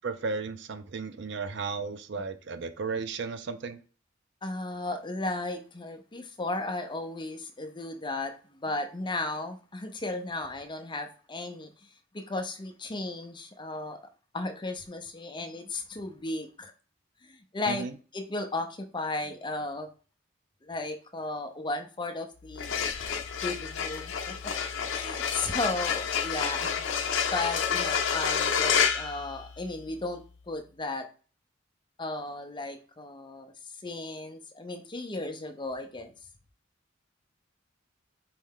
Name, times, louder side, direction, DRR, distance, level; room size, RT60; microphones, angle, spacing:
voice 1, 0.0-3.8 17.7-17.9, right 4 dB, 60° right, 10 dB, 0.5 m, -34 dB
voice 2, 4.4-11.7 12.1-14.0 14.3-16.7 17.2-17.9 18.1-19.9 20.6-22.8 23.4-24.4 24.9-26.9 27.3-30.2 30.5-31.1 32.0-33.5 33.8-36.1, left 2 dB, 25° left, 6 dB, 0.6 m, -35 dB
sound 1, 22.5-29.9, left 7 dB, 80° left, 0.6 m, -29 dB
4.6 x 3.2 x 3.6 m, 0.37 s
head